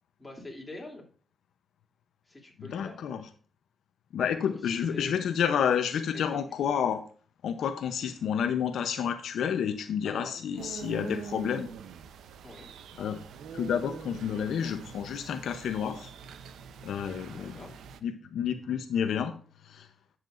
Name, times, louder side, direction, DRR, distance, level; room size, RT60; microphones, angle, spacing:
voice 1, 0.2-1.0 2.2-2.9 4.4-5.5 6.1-6.4 10.0-10.7 12.4-12.7 17.2-17.7, left 2 dB, 15° left, -1 dB, 3.0 m, -45 dB
voice 2, 2.7-3.2 4.1-7.0 7.4-11.7 13.0-13.2 13.5-16.1 16.8-17.5 18.0-19.3 19.6-19.9, left 8 dB, 80° left, 8 dB, 0.7 m, -30 dB
sound 1, 10.6-18.0, right 7 dB, 90° right, 0.6 m, -44 dB
10.5 x 7.3 x 2.5 m, 0.40 s
cardioid pair, 110°, 0 cm